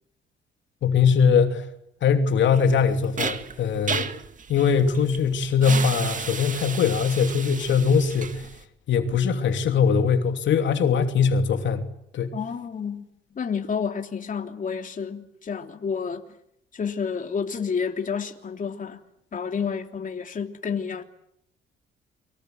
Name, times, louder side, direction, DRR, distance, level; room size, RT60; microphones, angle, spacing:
voice 1, 0.8-1.6 2.0-4.1 4.5-8.4 8.9-11.8 12.1-12.3, left 6 dB, 70° left, 3.0 m, -21 dB
sound 1, 2.5-8.6, right 5 dB, 40° right, 2.1 m, -33 dB
voice 2, 12.3-13.1 13.3-16.2 16.7-19.0 19.3-21.0, left 6 dB, 40° left, 3.3 m, -30 dB
29.5 x 24.5 x 8.0 m
cardioid pair, 90°, 20 cm